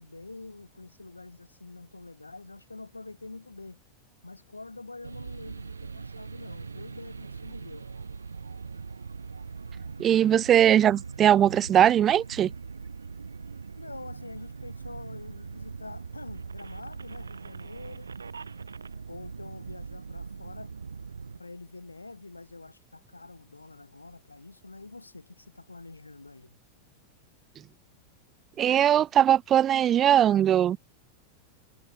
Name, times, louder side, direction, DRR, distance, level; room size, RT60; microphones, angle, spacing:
voice 1, 0.0-3.8 4.2-8.0 13.8-18.1 19.1-20.7 21.4-26.6, left 2 dB, 80° left, 7.3 m, -46 dB
sound 1, 5.0-21.4, right 5 dB, 75° right, 1.9 m, -41 dB
voice 2, 10.0-12.5 28.6-30.8, right 10 dB, 30° right, 0.9 m, -20 dB
figure-of-eight pair, 90°, 0 cm